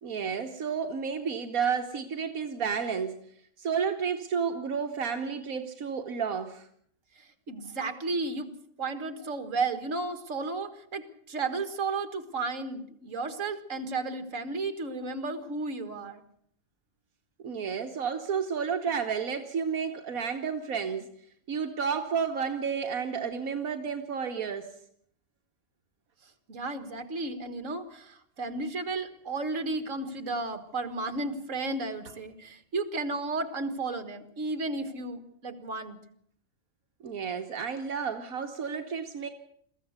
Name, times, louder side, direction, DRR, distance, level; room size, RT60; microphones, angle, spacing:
voice 1, 0.0-3.2 3.6-6.7 17.4-21.1 21.5-24.7 37.0-39.3, right 6 dB, 80° right, 4 dB, 1.6 m, -31 dB
voice 2, 7.2-8.5 8.8-16.2 26.2-36.0, right 3 dB, 65° right, 9 dB, 2.1 m, -33 dB
22.0 x 15.0 x 8.0 m, 0.67 s
omnidirectional pair, 1.4 m